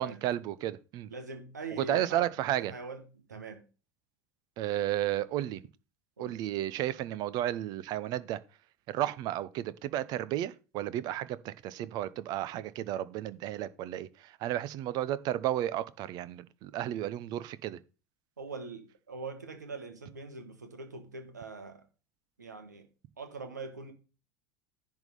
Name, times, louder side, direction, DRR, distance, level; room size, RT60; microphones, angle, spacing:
voice 1, 0.0-1.1 1.8-2.7 4.6-5.6 6.2-8.4 8.9-17.8, right 13 dB, 45° right, 0.6 m, -33 dB
voice 2, 1.1-3.0 3.3-3.6 6.2-6.4 18.4-21.9 22.4-22.9 23.2-23.9, right 3 dB, 80° right, 1.5 m, -42 dB
10.5 x 3.7 x 6.8 m
figure-of-eight pair, 70°, 9 cm